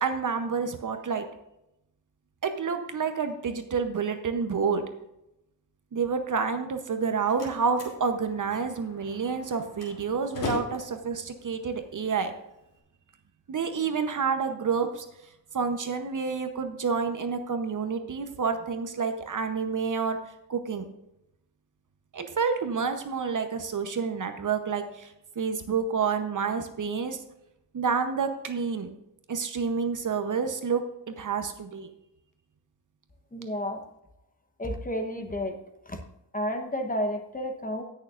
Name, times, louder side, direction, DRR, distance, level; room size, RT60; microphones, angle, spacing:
voice 1, 0.0-1.3 2.4-4.8 5.9-12.3 13.5-15.1 15.5-20.2 20.5-20.9 22.1-27.2 27.7-28.9 29.3-30.8 31.1-31.9, right 5 dB, 45° right, 7 dB, 0.9 m, -29 dB
Slam, 6.8-12.8, left 2 dB, 50° left, 2.7 m, -41 dB
voice 2, 33.3-33.8 34.6-35.6 35.9-36.0 36.3-37.8, equal, 20° left, 5 dB, 1.0 m, -31 dB
17.5 x 6.5 x 2.5 m, 0.87 s
wide cardioid pair, 135°, 43 cm